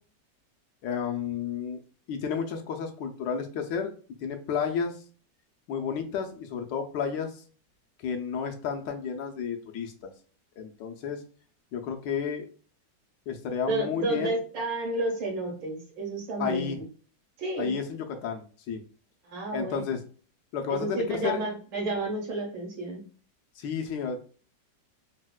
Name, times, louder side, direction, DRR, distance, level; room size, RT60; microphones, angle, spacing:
voice 1, 0.8-1.8 2.1-3.9 4.2-5.0 5.7-7.4 8.0-10.1 10.6-11.2 11.7-12.5 13.3-14.4 16.4-16.8 17.6-18.8 19.5-20.0 20.5-21.4 23.6-24.2, left 6 dB, 85° left, 4 dB, 1.3 m, -31 dB
voice 2, 13.7-16.8 17.4-17.7 19.2-19.8 20.7-23.0, right 1 dB, 85° right, -1 dB, 1.8 m, -31 dB
4.1 x 2.1 x 2.2 m, 0.39 s
omnidirectional pair, 1.9 m